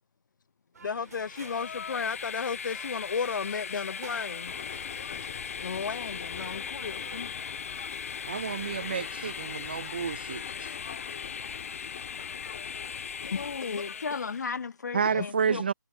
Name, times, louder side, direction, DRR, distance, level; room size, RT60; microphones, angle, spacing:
sound 1, 0.7-7.3, right 5 dB, 60° right, 3.8 m, -52 dB
voice 1, 0.8-4.5 5.6-7.3 12.2-12.3 13.2-13.8 15.1-15.3, left 5 dB, 80° left, 0.4 m, -34 dB
Train, 1.0-14.5, left 6 dB, 45° left, 0.9 m, -39 dB
sound 2, 4.4-13.6, left 11 dB, 30° left, 2.3 m, -45 dB
voice 2, 8.3-10.4 14.9-15.7, right 6 dB, 30° right, 0.3 m, -30 dB
voice 3, 13.2-15.7, left 5 dB, 60° left, 1.5 m, -35 dB
hypercardioid pair, 165°, 10 cm